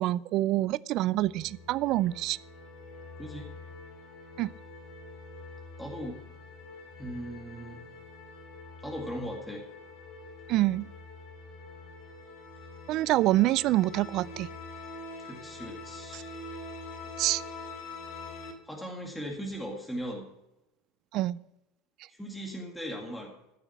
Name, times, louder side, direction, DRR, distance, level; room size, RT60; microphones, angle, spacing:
voice 1, 0.0-2.4 4.4-4.5 10.5-10.9 12.9-14.5 16.1-16.2 17.2-17.4 21.1-21.4, right 16 dB, 45° right, 0.4 m, -26 dB
sound 1, 1.1-18.5, left 3 dB, 50° left, 2.6 m, -45 dB
voice 2, 3.2-3.5 5.8-6.2 7.0-7.8 8.8-9.7 15.2-16.5 18.6-20.3 22.1-23.3, equal, 5° left, 2.1 m, -38 dB
14.5 x 6.8 x 5.9 m
supercardioid pair, 150°, 0 cm